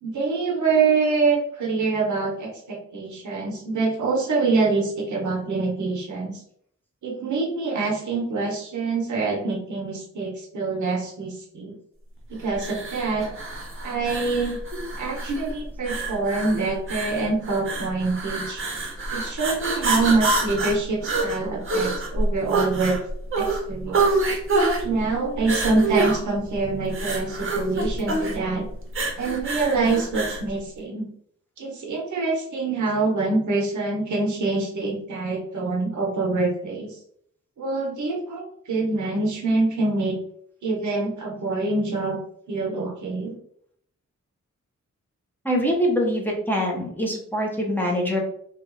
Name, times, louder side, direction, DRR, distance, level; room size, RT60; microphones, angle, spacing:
voice 1, 0.0-6.4 7.0-11.7 12.3-13.3 13.8-14.6 15.0-18.6 19.1-23.0 23.4-24.1 24.8-28.7 29.2-31.1 31.6-37.0 37.6-40.2 40.6-42.2 42.5-43.4, right 3 dB, 85° right, 0 dB, 0.7 m, -25 dB
sound 1, 12.5-30.5, right 2 dB, 45° right, 0.7 m, -26 dB
voice 2, 45.4-48.2, equal, 5° left, -2 dB, 0.6 m, -24 dB
2.9 x 2.3 x 2.5 m, 0.67 s
wide cardioid pair, 110°, 29 cm